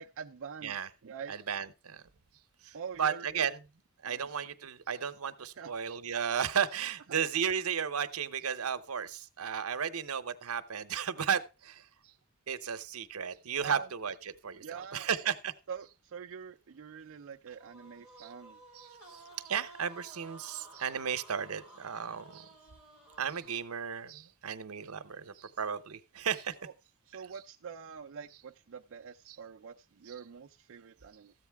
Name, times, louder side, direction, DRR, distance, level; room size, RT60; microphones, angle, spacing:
voice 1, 0.0-0.8 1.0-1.3 2.7-3.3 4.0-4.3 5.6-5.7 13.6-13.9 14.6-15.1 15.7-18.6 26.6-26.7 27.1-31.3, right 6 dB, 60° right, 0.4 m, -45 dB
voice 2, 1.3-2.0 2.6-3.6 4.0-12.1 12.5-15.5 18.2-18.3 18.7-22.5 23.2-26.6 29.3-29.4 30.0-30.1, right 7 dB, 85° right, 0.8 m, -34 dB
sound 1, 17.5-23.9, right 2 dB, 85° left, 3.0 m, -54 dB
14.0 x 8.2 x 3.4 m
head